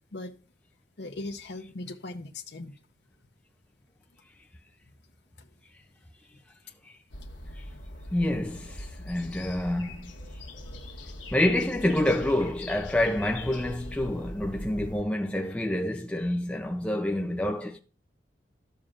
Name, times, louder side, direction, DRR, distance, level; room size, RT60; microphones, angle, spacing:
voice 1, 1.0-2.7 5.4-5.5, left 2 dB, 65° left, 0.8 m, -39 dB
sound 1, 7.1-15.0, left 1 dB, 90° left, 1.4 m, -42 dB
voice 2, 8.1-10.1 11.3-17.8, left 1 dB, 5° left, 0.4 m, -27 dB
12.5 x 7.0 x 2.4 m
head